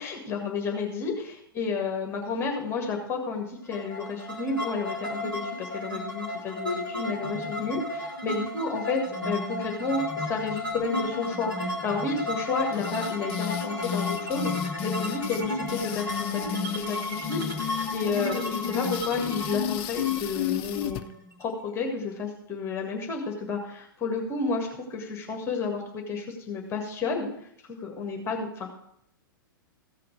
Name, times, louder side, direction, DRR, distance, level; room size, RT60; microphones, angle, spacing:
voice 1, 0.0-14.5 14.8-21.0 21.4-27.3 27.7-28.7, left 4 dB, 20° left, 2 dB, 1.8 m, -31 dB
sound 1, 3.7-21.4, left 1 dB, 85° right, 2.8 m, -33 dB
sound 2, 12.7-21.0, left 10 dB, 35° left, 0.6 m, -33 dB
14.5 x 5.8 x 5.0 m, 0.71 s
figure-of-eight pair, 105°, 12 cm